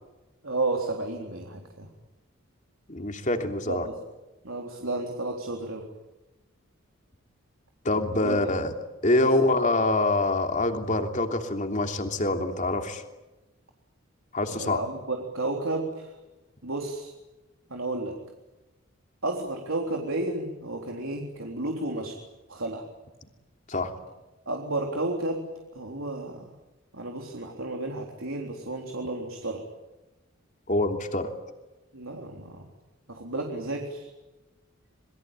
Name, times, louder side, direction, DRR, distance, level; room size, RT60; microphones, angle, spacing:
voice 1, 0.4-1.9 3.7-3.9 4.4-5.8 8.2-8.5 9.2-9.5 14.5-16.2 16.6-17.1 17.7-18.2 19.2-22.2 22.5-22.8 24.5-25.5 25.7-26.5 26.9-29.6 31.9-32.7 33.1-34.1, right 2 dB, 75° right, 2 dB, 3.7 m, -32 dB
voice 2, 2.9-3.9 7.8-8.7 9.0-13.0 14.3-14.8 23.7-23.9 30.7-31.3, left 2 dB, 35° left, 5 dB, 3.1 m, -25 dB
27.5 x 22.0 x 9.0 m, 1.1 s
head